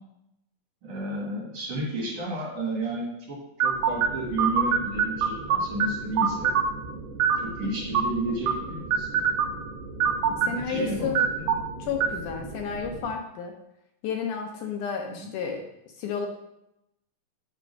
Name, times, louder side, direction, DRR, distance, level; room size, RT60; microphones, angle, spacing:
voice 1, 0.8-6.5 7.4-9.1 10.4-11.5, right 1 dB, 55° right, -4 dB, 2.4 m, -32 dB
sound 1, 3.6-13.1, right 7 dB, 75° right, 1.9 m, -27 dB
voice 2, 10.3-11.3 11.8-13.5 14.0-15.7 16.0-16.3, left 6 dB, 75° left, 3 dB, 2.1 m, -31 dB
7.6 x 3.7 x 5.3 m, 0.84 s
omnidirectional pair, 3.9 m